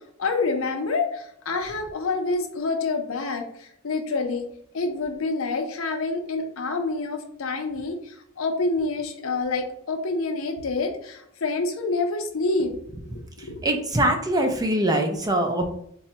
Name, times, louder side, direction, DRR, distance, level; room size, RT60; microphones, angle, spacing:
voice 1, 0.2-4.5 4.7-12.7 13.4-13.6, left 3 dB, 85° left, 4 dB, 0.6 m, -27 dB
voice 2, 13.6-15.7, right 1 dB, 20° right, 4 dB, 0.5 m, -23 dB
4.1 x 2.3 x 2.8 m, 0.72 s
head